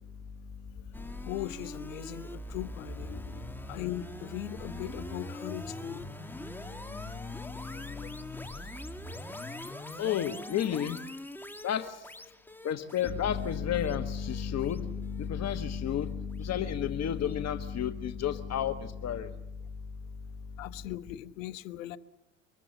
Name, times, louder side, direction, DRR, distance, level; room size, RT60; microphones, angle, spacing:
sound 1, 0.9-16.1, left 1 dB, 5° left, 1.8 m, -42 dB
voice 1, 1.2-3.2 3.7-6.1 7.7-8.1 8.5-8.6 20.6-22.0, left 15 dB, 80° left, 15 dB, 1.1 m, -39 dB
voice 2, 10.0-11.0 11.6-11.9 12.6-19.3, left 9 dB, 40° left, 8 dB, 1.4 m, -31 dB
24.5 x 21.5 x 7.1 m, 0.87 s
hypercardioid pair, 75°, 39 cm